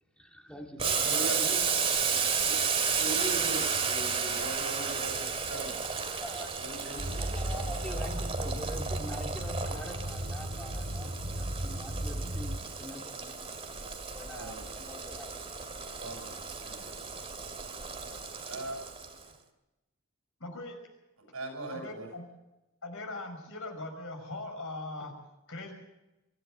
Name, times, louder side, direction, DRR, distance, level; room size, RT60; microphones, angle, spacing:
voice 1, 0.2-1.1 4.8-5.3 6.1-6.5 7.2-13.5 14.1-15.3, equal, 5° left, 2 dB, 2.1 m, -45 dB
Boiling, 0.8-19.2, right 5 dB, 30° right, 2.4 m, -33 dB
voice 2, 0.8-1.6 2.4-2.6 2.9-5.8 6.6-7.7 14.3-14.6 15.9-16.9 18.5-18.8 21.3-22.1, right 2 dB, 75° right, 3 dB, 7.8 m, -40 dB
sound 1, 7.0-12.6, right 1 dB, 55° right, 2.3 m, -35 dB
voice 3, 20.4-20.8 21.7-22.2 22.8-25.1 25.5-25.7, left 2 dB, 65° left, 4 dB, 5.8 m, -40 dB
24.5 x 15.0 x 7.8 m, 0.99 s
head